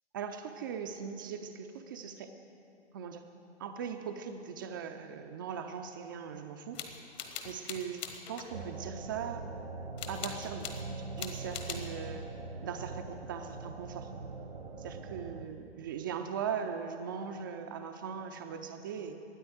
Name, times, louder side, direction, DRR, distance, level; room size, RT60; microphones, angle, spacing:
voice 1, 0.1-2.3 2.9-3.2 3.6-6.8 7.4-8.0 8.3-9.5 10.1-10.7 11.2-12.3 12.6-14.1 14.8-19.1, right 7 dB, 20° right, 5 dB, 0.3 m, -39 dB
sound 1, 6.7-8.5 10.0-10.8 11.2-11.9, left 8 dB, 40° left, 1.3 m, -42 dB
sound 2, 8.5-15.5, right 3 dB, 85° right, 1.1 m, -42 dB
13.5 x 9.3 x 7.9 m, 2.6 s
figure-of-eight pair, 120°, 33 cm